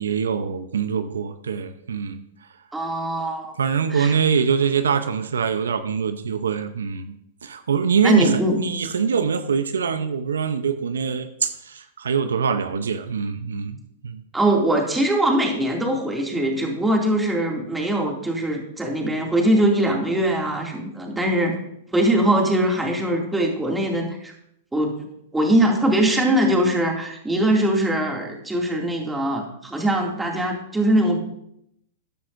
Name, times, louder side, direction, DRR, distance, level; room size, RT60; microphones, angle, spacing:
voice 1, 0.0-2.2 3.6-7.2 7.4-8.3 8.6-13.8 14.0-14.2, right 6 dB, 85° right, 10 dB, 0.7 m, -23 dB
voice 2, 2.7-3.5 3.9-4.1 8.0-8.6 14.3-21.5 21.9-24.3 24.7-24.9 25.3-31.2, right 1 dB, 10° right, 0 dB, 2.5 m, -21 dB
13.5 x 9.9 x 2.6 m, 0.77 s
hypercardioid pair, 115°, 0 cm